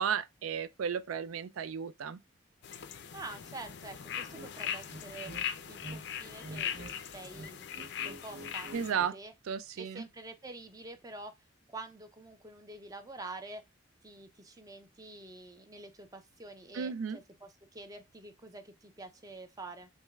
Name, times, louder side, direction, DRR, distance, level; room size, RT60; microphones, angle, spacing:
voice 1, 0.0-2.2 8.7-9.2 9.4-10.0 16.7-17.2, right 7 dB, 85° right, 0.4 m, -34 dB
sound 1, 2.6-8.9, left 9 dB, 55° left, 0.4 m, -40 dB
voice 2, 3.1-5.3 5.7-9.3 9.8-11.3 11.7-13.6 14.0-19.9, right 2 dB, 15° right, 0.5 m, -47 dB
sound 2, 4.3-4.5 4.9-6.0 6.3-6.9 7.2-9.1, right 1 dB, 50° right, 0.7 m, -47 dB
6.2 x 2.1 x 2.3 m
head